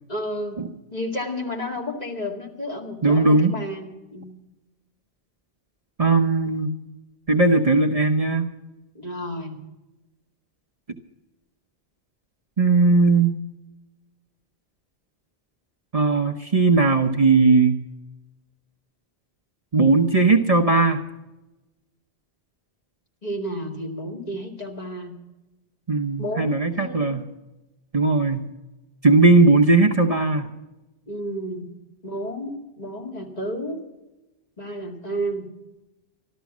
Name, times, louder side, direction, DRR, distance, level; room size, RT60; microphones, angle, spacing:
voice 1, 0.1-0.6 0.9-4.4 8.9-9.6 23.2-25.1 26.2-27.2 31.1-31.7 32.0-33.8 34.6-35.5, equal, 40° left, -1 dB, 2.6 m, -31 dB
voice 2, 3.0-3.5 6.0-6.7 7.3-8.5 12.6-13.3 15.9-17.8 19.7-21.0 25.9-27.3 27.9-28.5 29.0-30.5, right 3 dB, 40° right, 3 dB, 0.9 m, -18 dB
13.5 x 13.0 x 6.1 m, 1.0 s
omnidirectional pair, 1.0 m